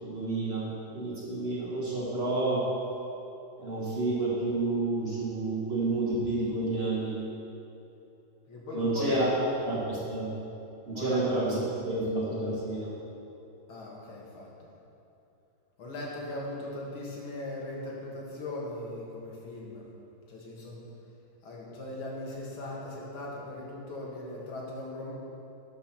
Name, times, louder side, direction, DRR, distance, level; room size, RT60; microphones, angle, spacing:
voice 1, 0.0-2.7 3.6-7.2 8.7-9.3 9.7-10.3 10.9-12.9, right 2 dB, 30° right, -6 dB, 2.1 m, -30 dB
voice 2, 8.5-9.2 10.9-11.3 13.7-14.7 15.8-19.9 20.3-20.8 21.4-25.1, left 2 dB, 85° left, -3 dB, 2.6 m, -39 dB
13.0 x 5.9 x 5.9 m, 2.9 s
omnidirectional pair, 2.2 m